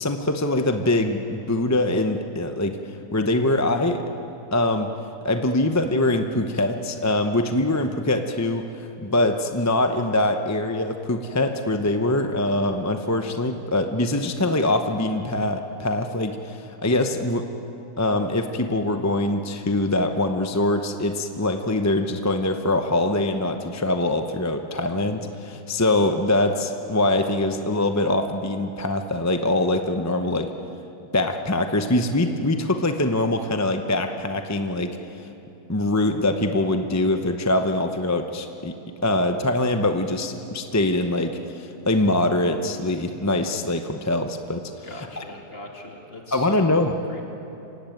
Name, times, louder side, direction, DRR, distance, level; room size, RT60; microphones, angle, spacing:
voice 1, 0.0-2.8 3.1-4.0 4.5-4.9 5.2-17.5 18.0-30.5 31.1-35.0 35.7-38.7 39.0-44.9 45.2-45.3 46.3-46.9, left 2 dB, 15° left, 6 dB, 0.6 m, -23 dB
voice 2, 44.8-47.2, left 2 dB, 35° left, 1 dB, 2.9 m, -39 dB
26.5 x 16.0 x 9.3 m, 2.9 s
omnidirectional pair, 1.7 m